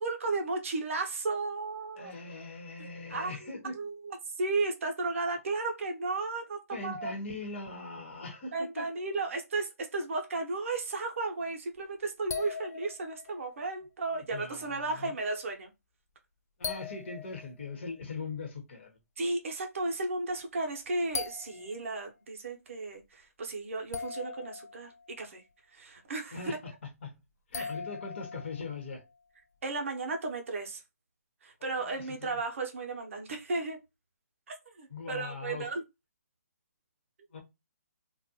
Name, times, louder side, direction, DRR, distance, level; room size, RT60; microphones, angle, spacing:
voice 1, 0.0-2.1 3.1-3.4 3.7-7.1 8.5-15.7 19.2-25.4 25.7-26.6 27.6-27.7 29.6-30.8 31.4-33.8 34.5-35.8, right 3 dB, 55° right, 0.7 m, -34 dB
voice 2, 2.0-3.8 6.7-8.9 14.1-15.1 16.6-19.0 26.3-27.1 27.5-29.0 31.6-32.4 34.9-35.7 37.3-37.4, left 3 dB, 45° left, 1.0 m, -41 dB
sound 1, 11.8-11.9 12.3-13.6 16.6-18.2 20.4-20.5 21.1-22.0 23.9-25.2 27.5-29.0, left 5 dB, 80° left, 0.4 m, -40 dB
2.5 x 2.2 x 2.7 m
hypercardioid pair, 150°, 8 cm